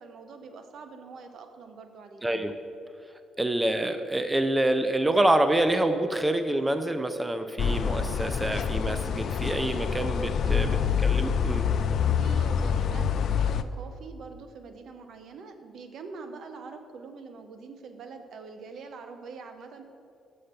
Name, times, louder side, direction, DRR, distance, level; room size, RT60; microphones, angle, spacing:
voice 1, 0.0-2.2 10.4-10.8 12.1-19.8, right 4 dB, 70° right, 7 dB, 0.8 m, -44 dB
voice 2, 2.2-2.5 3.4-10.8 11.0-11.7, right 1 dB, 10° right, 8 dB, 0.4 m, -26 dB
sound 1, 7.6-13.6, left 7 dB, 65° left, 0.3 m, -26 dB
6.5 x 5.7 x 6.6 m, 2.5 s
cardioid pair, 90°, 0 cm